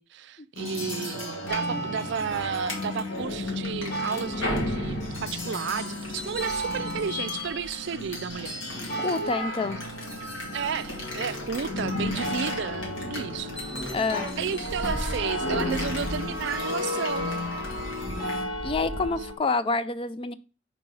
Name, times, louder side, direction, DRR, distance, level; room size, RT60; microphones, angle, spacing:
voice 1, 0.0-8.6 10.5-13.9 14.4-17.3, right 7 dB, 60° right, 0.4 m, -32 dB
sound 1, 0.6-18.4, left 2 dB, 70° left, 2.2 m, -33 dB
sound 2, 1.5-19.4, right 1 dB, 50° left, 1.2 m, -37 dB
voice 2, 9.0-9.8 13.9-14.3 18.6-20.3, left 3 dB, 30° left, 0.4 m, -27 dB
4.5 x 4.3 x 5.4 m
head